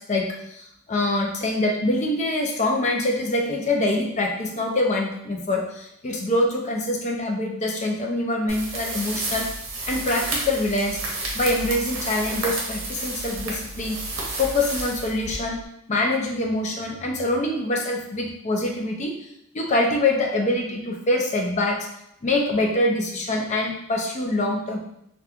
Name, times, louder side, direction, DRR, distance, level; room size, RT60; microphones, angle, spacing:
voice 1, 0.1-9.5 9.9-11.0 11.3-14.0 14.4-15.6 15.9-19.2 19.5-21.9 22.2-24.8, left 2 dB, 35° left, 0 dB, 0.4 m, -24 dB
sound 1, 8.5-15.6, right 2 dB, 70° right, 0.7 m, -31 dB
2.9 x 2.2 x 2.4 m, 0.77 s
head